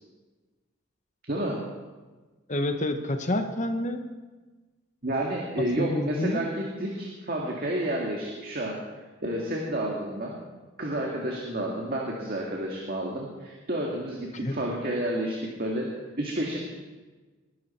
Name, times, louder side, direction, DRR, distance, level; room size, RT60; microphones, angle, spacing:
voice 1, 1.3-1.6 5.0-8.8 9.2-10.4 10.8-16.6, right 1 dB, 50° right, -2 dB, 1.9 m, -30 dB
voice 2, 2.5-4.0 5.8-6.4 14.4-14.6, left 1 dB, 35° left, 7 dB, 1.1 m, -28 dB
20.0 x 11.0 x 4.4 m, 1.3 s
head